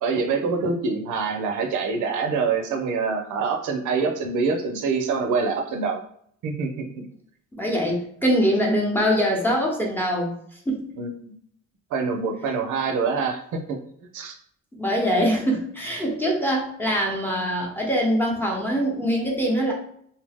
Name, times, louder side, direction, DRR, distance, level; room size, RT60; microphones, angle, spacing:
voice 1, 0.0-6.0 6.4-7.1 11.0-11.3 11.9-14.4, right 4 dB, 80° right, 4 dB, 0.6 m, -25 dB
voice 2, 7.6-10.3 10.7-10.9 14.8-19.7, equal, 5° left, -1 dB, 0.8 m, -23 dB
2.8 x 2.0 x 3.3 m, 0.66 s
cardioid pair, 90°, 30 cm